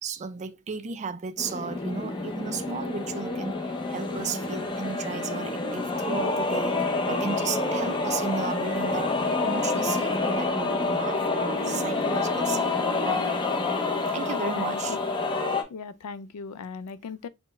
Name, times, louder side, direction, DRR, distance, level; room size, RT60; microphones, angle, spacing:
voice 1, 0.0-13.3 14.1-15.0, right 5 dB, 30° right, 0.4 m, -34 dB
sound 1, 1.4-15.6, left 3 dB, 20° left, 0.6 m, -28 dB
voice 2, 14.6-15.0 15.7-17.3, left 5 dB, 75° left, 0.4 m, -38 dB
4.3 x 2.1 x 3.1 m
head